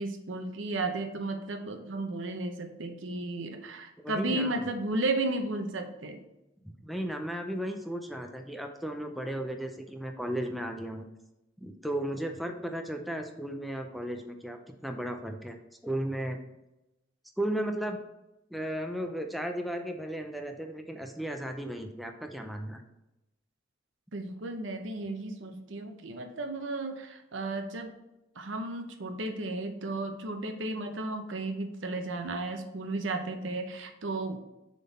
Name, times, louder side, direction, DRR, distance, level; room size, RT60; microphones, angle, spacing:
voice 1, 0.0-6.2 24.1-27.9 28.4-34.4, right 2 dB, 80° right, 6 dB, 0.8 m, -34 dB
voice 2, 4.0-4.7 6.6-11.0 11.6-15.6 15.8-16.4 17.4-18.0 18.5-22.8, right 1 dB, ahead, 4 dB, 0.5 m, -35 dB
7.2 x 3.8 x 4.1 m, 0.94 s
head